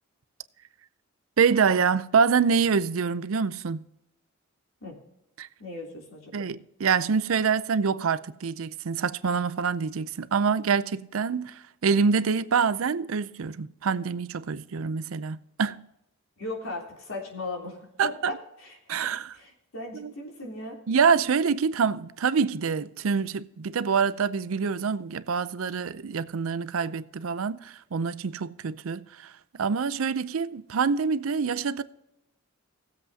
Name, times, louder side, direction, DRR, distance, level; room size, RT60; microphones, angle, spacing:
voice 1, 1.4-3.9 5.4-5.5 6.3-15.9 18.0-18.3 18.9-19.3 19.9-20.1 20.9-31.8, right 5 dB, 80° right, 0.5 m, -26 dB
voice 2, 5.6-6.5 16.4-18.3 18.6-18.8 19.3-20.8, left 2 dB, 80° left, 3.2 m, -37 dB
19.0 x 7.8 x 2.8 m
head